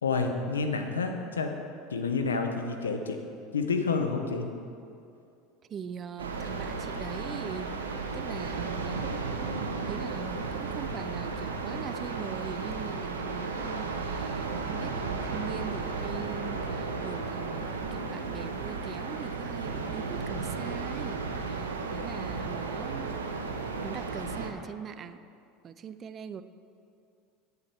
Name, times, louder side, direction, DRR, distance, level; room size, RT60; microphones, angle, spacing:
voice 1, 0.0-1.5 1.9-3.2 3.5-4.5, left 4 dB, 90° left, 5 dB, 0.7 m, -29 dB
voice 2, 5.7-9.5 9.9-23.2 23.8-25.2 25.6-26.4, right 7 dB, 40° right, 13 dB, 0.4 m, -42 dB
sound 1, 6.2-24.5, right 4 dB, 90° right, 0.7 m, -34 dB
8.7 x 7.9 x 4.3 m, 2.5 s
hypercardioid pair, 80°, 0 cm